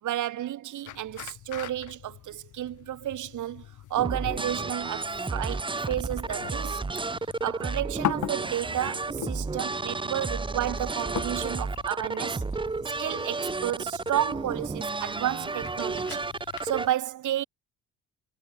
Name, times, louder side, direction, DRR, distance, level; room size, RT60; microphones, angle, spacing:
voice 1, 0.0-3.6 3.9-6.8 7.4-12.4 13.0-16.3 16.6-17.4, right 12 dB, 75° right, 6.5 m, -31 dB
sound 1, 0.9-16.9, left 13 dB, 75° left, 2.7 m, -41 dB
sound 2, 4.0-16.9, right 3 dB, 15° right, 1.1 m, -32 dB
cardioid pair, 90°, 30 cm